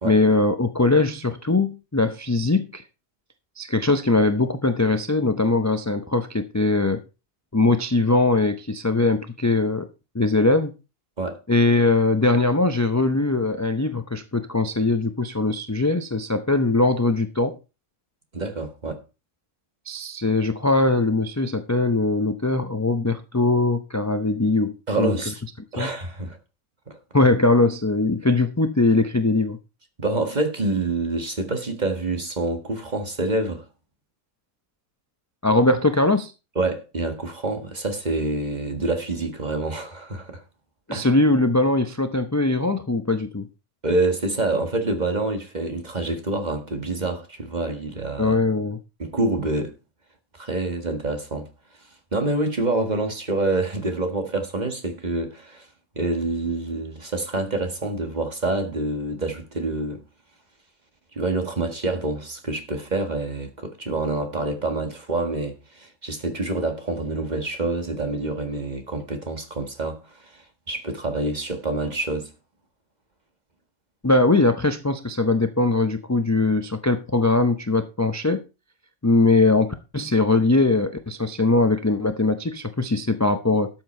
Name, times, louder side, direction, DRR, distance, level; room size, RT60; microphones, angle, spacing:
voice 1, 0.0-2.8 3.6-7.0 7.5-9.9 10.1-10.7 11.5-17.6 19.9-25.1 25.8-25.9 27.1-29.6 35.4-36.3 40.9-43.5 48.2-48.8 74.0-78.4 79.0-83.7, left 2 dB, 15° left, 0.6 m, -21 dB
voice 2, 18.3-19.0 24.9-25.4 25.7-26.4 26.9-27.0 30.0-33.7 36.6-40.4 40.9-41.1 43.8-48.4 49.0-49.7 50.3-51.5 52.1-55.7 56.0-60.0 61.1-72.3, right 2 dB, 35° right, 1.8 m, -27 dB
12.5 x 7.7 x 4.4 m
omnidirectional pair, 1.3 m